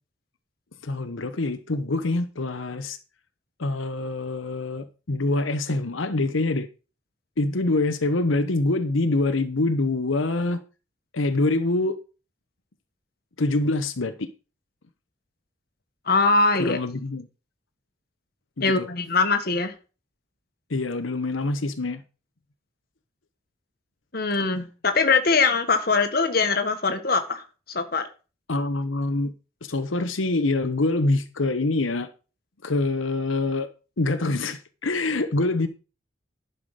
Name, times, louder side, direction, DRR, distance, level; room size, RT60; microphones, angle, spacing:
voice 1, 0.8-3.0 3.6-6.7 7.4-10.6 11.1-12.0 13.4-14.3 16.6-17.3 18.6-18.9 20.7-22.0 28.5-29.3 29.6-32.1 32.6-33.7 34.0-35.7, left 2 dB, 85° left, 1.0 m, -25 dB
voice 2, 16.1-16.8 18.6-19.7 24.1-27.4 27.7-28.1, left 4 dB, 50° left, 1.5 m, -22 dB
11.0 x 5.8 x 6.6 m
head